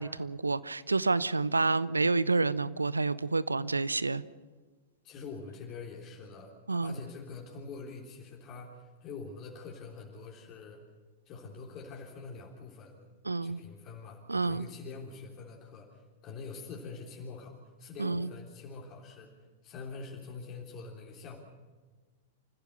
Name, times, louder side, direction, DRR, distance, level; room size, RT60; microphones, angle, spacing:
voice 1, 0.0-4.2 6.7-7.0 13.2-13.6 14.3-14.7 18.0-18.3, right 3 dB, 80° right, 18 dB, 0.7 m, -29 dB
voice 2, 5.0-10.8 11.3-13.1 13.4-21.4, left 4 dB, 30° left, -1 dB, 3.5 m, -45 dB
28.0 x 15.0 x 6.7 m, 1.4 s
figure-of-eight pair, 100°, 0 cm